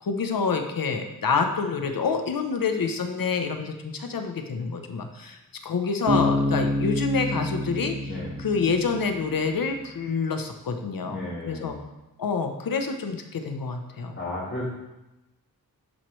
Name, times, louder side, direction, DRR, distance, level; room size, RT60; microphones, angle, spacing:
voice 1, 0.0-8.1 8.4-11.8 12.2-14.1, left 5 dB, 70° left, 6 dB, 0.8 m, -27 dB
Bass guitar, 6.1-9.6, left 1 dB, 70° right, 1.5 m, -27 dB
voice 2, 11.0-11.8 14.1-14.7, left 1 dB, 45° left, -12 dB, 2.5 m, -34 dB
10.5 x 4.6 x 3.1 m, 0.98 s
wide cardioid pair, 80°, 36 cm